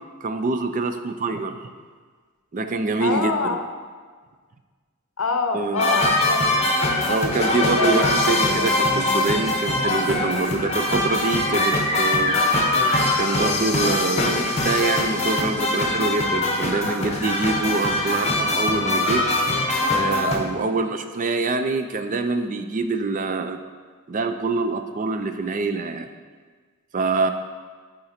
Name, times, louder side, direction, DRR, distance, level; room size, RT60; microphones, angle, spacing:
voice 1, 0.2-1.6 2.5-3.6 5.5-5.9 7.1-12.4 13.1-19.2 19.9-23.6 24.1-26.1 26.9-27.3, right 3 dB, 35° right, 8 dB, 0.4 m, -25 dB
voice 2, 3.0-3.6 5.2-6.4 7.5-8.1 8.4-8.7 20.6-20.7, left 3 dB, 70° left, 6 dB, 0.7 m, -26 dB
sound 1, 5.8-20.4, left 2 dB, 30° left, 0.9 m, -22 dB
8.9 x 3.9 x 4.3 m, 1.5 s
head